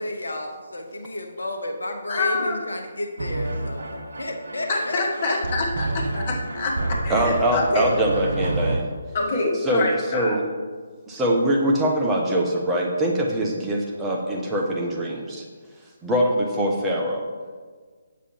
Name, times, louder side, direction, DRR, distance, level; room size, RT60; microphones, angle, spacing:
voice 1, 0.0-3.8 4.2-5.3, left 1 dB, 70° left, 4 dB, 1.0 m, -31 dB
voice 2, 2.1-2.6 4.7-7.9 9.1-10.4, left 3 dB, 40° left, -1 dB, 2.0 m, -26 dB
sound 1, 3.2-8.8, right 2 dB, 60° right, 1.0 m, -29 dB
voice 3, 7.1-8.9 9.6-10.4 11.1-15.4 16.0-17.3, right 1 dB, 10° right, -2 dB, 1.0 m, -23 dB
8.5 x 7.2 x 4.5 m, 1.5 s
figure-of-eight pair, 140°, 0 cm